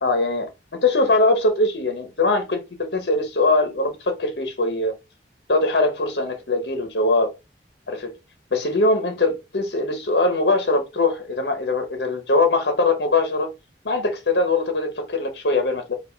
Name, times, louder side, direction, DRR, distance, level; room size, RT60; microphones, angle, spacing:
voice 1, 0.0-4.9 5.5-7.3 7.9-8.1 8.5-13.5 13.8-15.9, left 2 dB, 70° left, 1.0 m, -21 dB
4.7 x 2.5 x 3.9 m
head